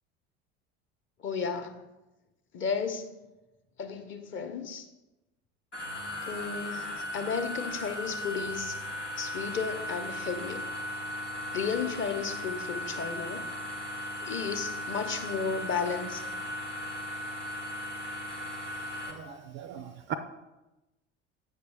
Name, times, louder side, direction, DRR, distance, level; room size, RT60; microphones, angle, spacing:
voice 1, 1.2-1.7 2.5-3.1 3.8-4.8 6.3-8.8 9.2-10.6 11.5-13.4 14.2-16.2, left 6 dB, 35° left, 7 dB, 0.8 m, -33 dB
sound 1, 5.7-19.1, left 1 dB, 90° left, 1.0 m, -37 dB
voice 2, 19.1-20.1, right 8 dB, 35° right, 10 dB, 0.4 m, -38 dB
8.1 x 5.2 x 3.4 m, 1.0 s
figure-of-eight pair, 65°, 35 cm